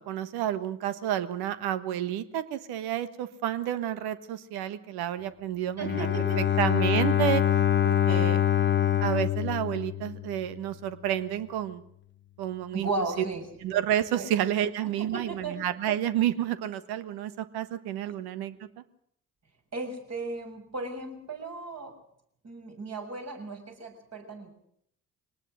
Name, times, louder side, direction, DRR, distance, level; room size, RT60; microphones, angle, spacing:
voice 1, 0.0-6.1 6.4-7.4 7.8-8.4 9.0-11.8 12.4-12.9 13.6-18.6, right 11 dB, 65° right, 13 dB, 1.5 m, -30 dB
Bowed string instrument, 5.8-10.6, left 10 dB, 25° left, 1.1 m, -25 dB
voice 2, 5.8-6.4 8.1-8.4 12.7-13.5 14.1-14.3 14.8-15.6 18.1-18.2 19.7-21.9 22.4-24.5, right 3 dB, 40° right, 3 dB, 6.9 m, -35 dB
23.5 x 19.0 x 6.4 m, 0.70 s
figure-of-eight pair, 50°, 41 cm